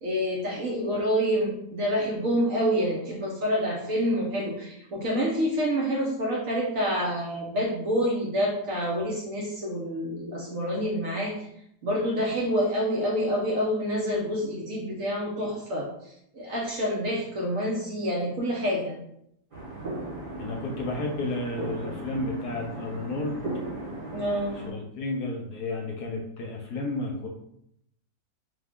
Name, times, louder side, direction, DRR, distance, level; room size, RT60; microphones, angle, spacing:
voice 1, 0.0-11.5 11.8-15.9 16.3-19.0 24.1-24.6, equal, 60° right, -3 dB, 0.9 m, -27 dB
sound 1, 19.5-24.7, right 2 dB, 35° right, 1.0 m, -37 dB
voice 2, 20.4-23.4 24.7-27.3, left 2 dB, 70° left, 1 dB, 1.1 m, -32 dB
3.5 x 2.3 x 3.5 m, 0.75 s
omnidirectional pair, 1.9 m